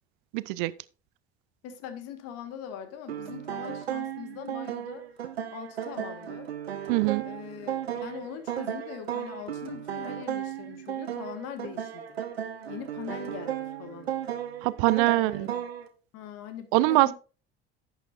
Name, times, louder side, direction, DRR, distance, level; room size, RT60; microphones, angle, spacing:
voice 1, 0.3-0.7 6.9-7.3 14.6-15.5 16.7-17.1, right 19 dB, 55° right, 0.5 m, -23 dB
voice 2, 1.6-5.1 5.5-6.5 7.2-12.2 12.7-14.1 15.1-15.6 16.1-17.1, left 8 dB, 50° left, 1.6 m, -41 dB
sound 1, 3.1-15.9, right 10 dB, 75° right, 1.1 m, -35 dB
11.0 x 9.0 x 2.6 m
figure-of-eight pair, 60°, 31 cm